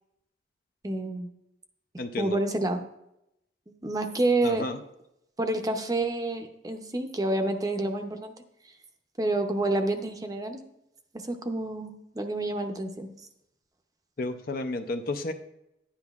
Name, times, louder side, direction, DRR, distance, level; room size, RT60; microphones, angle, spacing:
voice 1, 0.8-1.3 2.2-2.8 3.8-4.6 5.4-8.3 9.2-10.6 11.2-13.1, right 2 dB, 20° right, 5 dB, 0.6 m, -28 dB
voice 2, 2.0-2.4 4.4-4.8 14.2-15.3, left 2 dB, 50° left, 7 dB, 0.5 m, -32 dB
10.5 x 10.0 x 2.4 m, 0.84 s
head